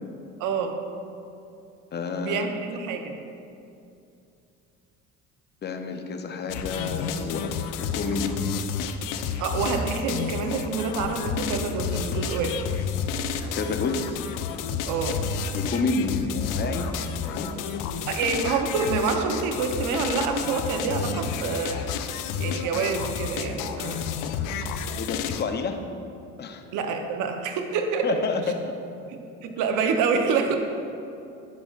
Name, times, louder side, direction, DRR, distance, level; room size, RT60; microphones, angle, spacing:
voice 1, 0.4-0.8 2.2-3.2 9.4-12.6 14.8-15.2 18.1-21.8 22.4-24.0 26.7-28.2 29.4-30.6, right 5 dB, 65° right, 4 dB, 0.8 m, -27 dB
voice 2, 1.9-2.5 5.6-8.4 13.5-14.1 15.5-16.9 17.2-17.8 25.0-25.8 26.4-26.6 28.0-28.7 30.5-30.6, left 4 dB, 30° left, 6 dB, 0.7 m, -29 dB
sound 1, 6.5-25.4, left 6 dB, 75° left, 0.5 m, -30 dB
10.5 x 5.4 x 2.4 m, 2.6 s
supercardioid pair, 80°, 33 cm